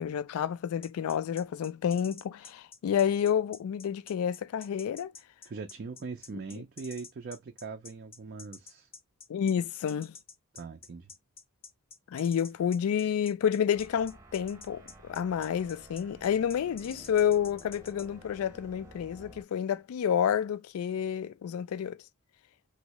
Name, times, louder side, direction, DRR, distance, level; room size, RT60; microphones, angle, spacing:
voice 1, 0.0-5.1 9.3-10.1 12.1-22.0, left 8 dB, 75° left, 0.3 m, -29 dB
sound 1, 0.8-18.1, left 5 dB, 25° left, 0.6 m, -48 dB
voice 2, 5.5-8.9 10.5-11.1, right 4 dB, 45° right, 0.4 m, -41 dB
sound 2, 13.7-19.4, right 1 dB, 15° right, 0.8 m, -53 dB
3.0 x 2.7 x 2.9 m
head